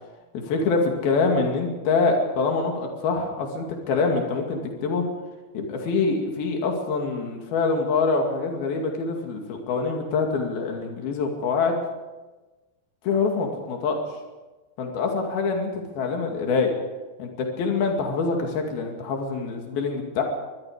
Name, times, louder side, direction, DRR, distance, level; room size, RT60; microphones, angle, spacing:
voice 1, 0.3-5.1 5.5-11.8 13.1-14.0 14.8-16.7 17.2-20.2, left 4 dB, 80° left, 2 dB, 4.2 m, -25 dB
25.0 x 21.0 x 5.0 m, 1.2 s
omnidirectional pair, 4.2 m